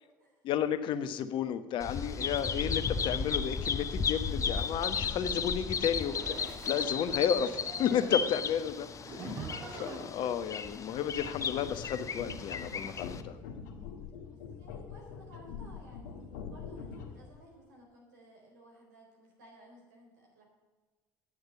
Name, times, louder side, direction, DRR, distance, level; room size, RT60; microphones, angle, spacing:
voice 1, 0.4-6.1 6.7-13.4, left 8 dB, 60° left, 11 dB, 1.0 m, -32 dB
Bird vocalization bird call bird song, 1.8-13.2, left 5 dB, 35° left, 0.9 m, -35 dB
voice 2, 2.0-2.6 14.2-20.4, equal, 90° right, -1 dB, 4.1 m, -56 dB
sound 1, 4.5-5.3 6.0-8.4 9.0-10.0, right 2 dB, 50° right, 4.3 m, -44 dB
sound 2, 11.1-17.3, left 6 dB, 85° left, 1.5 m, -44 dB
9.8 x 6.5 x 8.7 m, 1.3 s
hypercardioid pair, 70°, 9 cm